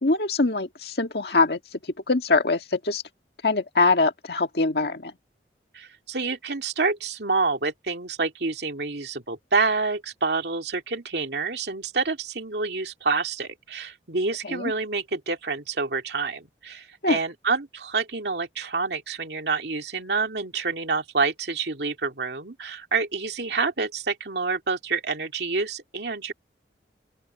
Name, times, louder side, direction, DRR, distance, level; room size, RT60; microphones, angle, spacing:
voice 1, 0.0-1.8 2.1-3.0 3.4-5.1 14.4-14.7 17.0-17.2, left 3 dB, 65° left, 1.9 m, -23 dB
voice 2, 5.7-26.3, right 4 dB, 70° right, 2.4 m, -28 dB
open air
head